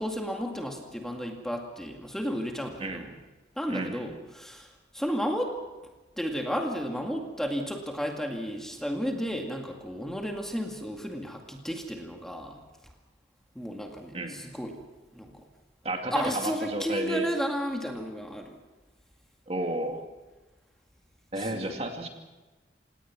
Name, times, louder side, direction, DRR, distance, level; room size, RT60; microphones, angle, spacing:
voice 1, 0.0-3.1 3.6-5.6 6.2-12.6 13.6-14.8 15.1-15.5 16.1-18.6 21.4-21.8, equal, 5° left, 2 dB, 2.1 m, -33 dB
voice 2, 3.7-4.0 14.1-14.4 15.8-17.3 19.5-20.1 21.3-22.1, right 1 dB, 35° right, 4 dB, 2.5 m, -32 dB
28.5 x 18.0 x 6.1 m, 1.2 s
head